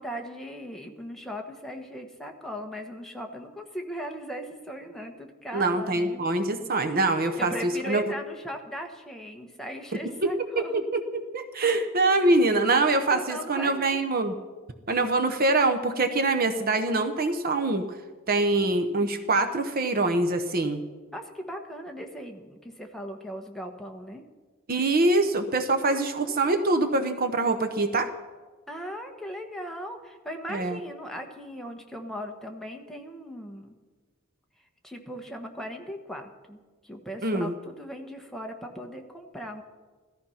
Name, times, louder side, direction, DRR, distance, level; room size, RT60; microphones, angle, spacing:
voice 1, 0.0-6.2 7.3-10.8 12.9-14.0 21.1-24.2 25.8-26.5 28.7-33.8 34.8-36.6 36.8-39.6, equal, ahead, 2 dB, 1.3 m, -38 dB
voice 2, 5.5-8.0 10.2-14.3 14.9-17.9 18.3-20.8 24.7-28.1 30.5-30.8 37.2-37.5, right 2 dB, 45° right, 7 dB, 0.9 m, -24 dB
16.0 x 14.0 x 5.7 m, 1.3 s
head